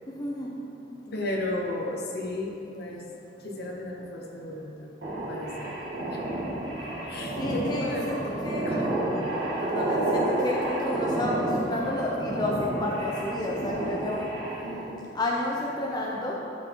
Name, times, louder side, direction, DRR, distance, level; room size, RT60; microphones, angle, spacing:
voice 1, 0.1-0.5 0.9-1.4 7.4-8.2 8.4-8.7 9.6-14.3 15.1-16.3, left 1 dB, 25° left, -3 dB, 0.8 m, -31 dB
voice 2, 1.1-3.0 3.4-4.9 5.3-6.2 7.1-9.4 14.6-15.0, left 1 dB, 60° left, -1 dB, 1.2 m, -34 dB
sound 1, 5.0-14.9, right 1 dB, 70° right, 2.1 m, -30 dB
11.5 x 6.2 x 4.7 m, 2.7 s
head